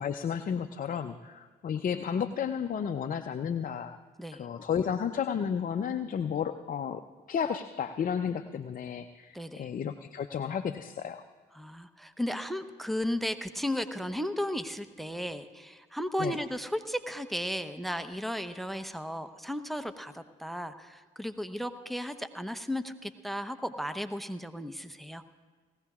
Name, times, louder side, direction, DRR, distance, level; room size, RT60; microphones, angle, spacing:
voice 1, 0.0-4.0 4.4-7.0 7.3-11.2 16.2-16.4, left 7 dB, 40° left, 6 dB, 0.6 m, -32 dB
voice 2, 9.3-9.7 11.5-25.2, equal, ahead, 10 dB, 0.8 m, -35 dB
20.0 x 16.0 x 2.4 m, 1.5 s
hypercardioid pair, 55°, 21 cm